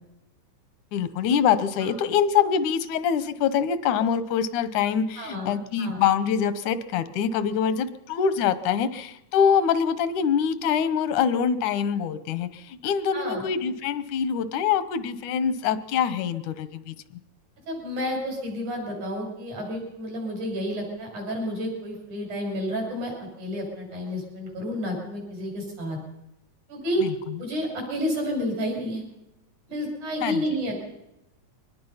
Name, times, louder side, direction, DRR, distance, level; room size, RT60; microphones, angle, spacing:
voice 1, 0.9-17.0 27.0-27.1 30.2-30.4, left 7 dB, 85° left, 13 dB, 2.4 m, -24 dB
voice 2, 5.2-5.5 5.8-6.0 13.1-13.4 17.7-26.0 26.7-27.0 27.4-29.0 29.7-30.8, equal, 80° right, 0 dB, 7.9 m, -30 dB
23.5 x 19.5 x 5.7 m, 0.90 s
omnidirectional pair, 3.4 m